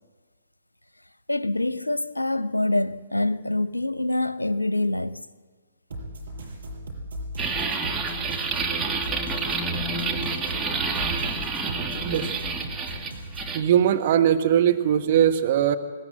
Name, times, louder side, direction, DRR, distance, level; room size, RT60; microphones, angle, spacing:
voice 1, 1.3-5.3, left 2 dB, 85° left, 0.8 m, -25 dB
sound 1, 5.9-13.5, equal, 70° right, 5.7 m, -37 dB
sound 2, 7.4-13.6, right 4 dB, 15° right, 1.9 m, -28 dB
voice 2, 13.5-15.8, right 10 dB, 45° right, 1.3 m, -20 dB
20.5 x 19.0 x 8.0 m
figure-of-eight pair, 120°, 0 cm